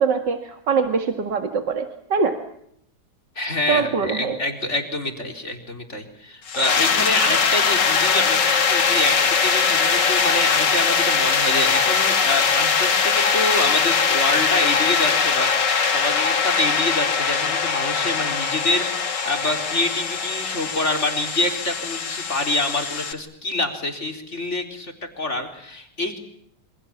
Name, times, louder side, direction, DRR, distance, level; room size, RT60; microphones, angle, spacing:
voice 1, 0.0-2.4 3.7-4.4, right 5 dB, 85° right, 6 dB, 2.6 m, -23 dB
voice 2, 3.4-26.2, left 2 dB, 40° left, 4 dB, 4.4 m, -26 dB
sound 1, 6.5-23.1, left 5 dB, 80° left, 2.6 m, -21 dB
28.0 x 25.5 x 7.3 m, 0.73 s
omnidirectional pair, 1.9 m